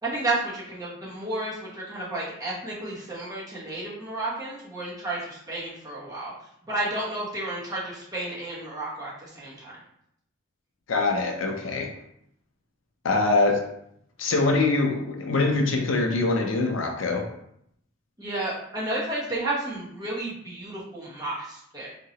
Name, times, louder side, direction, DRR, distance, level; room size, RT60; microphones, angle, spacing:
voice 1, 0.0-6.3 6.7-9.7 18.2-21.9, right 2 dB, 20° right, -7 dB, 1.1 m, -32 dB
voice 2, 10.9-11.9 13.0-13.6 14.2-17.3, left 3 dB, 65° left, 3 dB, 0.5 m, -23 dB
3.7 x 2.9 x 2.9 m, 0.73 s
head